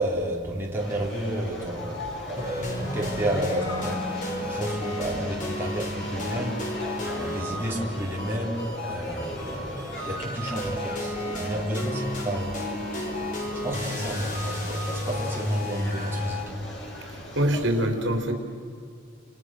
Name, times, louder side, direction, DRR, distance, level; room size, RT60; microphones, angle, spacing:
voice 1, 0.0-2.0 2.3-12.6 13.4-16.5, right 1 dB, 10° right, -3 dB, 4.1 m, -31 dB
sound 1, 0.8-17.6, left 1 dB, 65° left, 7.9 m, -38 dB
sound 2, 2.4-16.5, left 1 dB, 40° left, 4.7 m, -32 dB
voice 2, 17.3-18.3, right 1 dB, 75° right, 5 dB, 3.7 m, -24 dB
29.0 x 29.0 x 6.5 m, 2.4 s
head